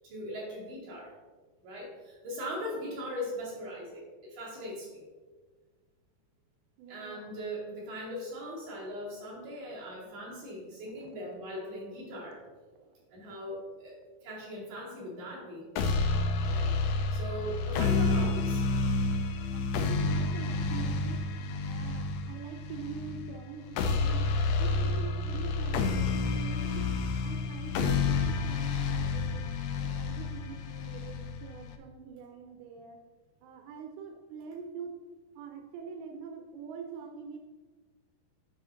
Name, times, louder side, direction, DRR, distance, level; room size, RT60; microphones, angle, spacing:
voice 1, 0.0-1.1 1.6-5.0 6.9-12.4 13.1-15.7 16.4-16.7 17.1-18.7, equal, 50° right, -6 dB, 3.7 m, -40 dB
voice 2, 6.8-7.3 11.0-11.1 12.2-13.3 19.5-21.2 21.6-26.8 27.2-29.5 29.8-33.0 33.4-34.9 35.4-37.4, right 6 dB, 90° right, 4 dB, 2.6 m, -44 dB
sound 1, 15.8-31.8, left 3 dB, 80° left, 1.9 m, -30 dB
9.9 x 5.1 x 3.8 m, 1.4 s
omnidirectional pair, 4.4 m